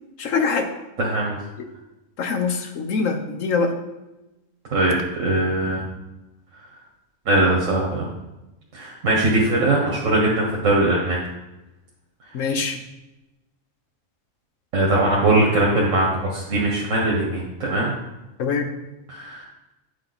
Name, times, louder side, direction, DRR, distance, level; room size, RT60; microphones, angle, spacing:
voice 1, 0.2-0.7 2.2-3.7 12.3-12.8 18.4-18.7, left 4 dB, 85° left, 5 dB, 1.2 m, -23 dB
voice 2, 1.0-1.4 4.7-5.8 7.3-8.1 8.7-11.2 14.7-17.9 19.1-19.4, right 2 dB, 80° right, -3 dB, 1.5 m, -21 dB
8.6 x 5.0 x 4.0 m, 1.0 s
omnidirectional pair, 1.3 m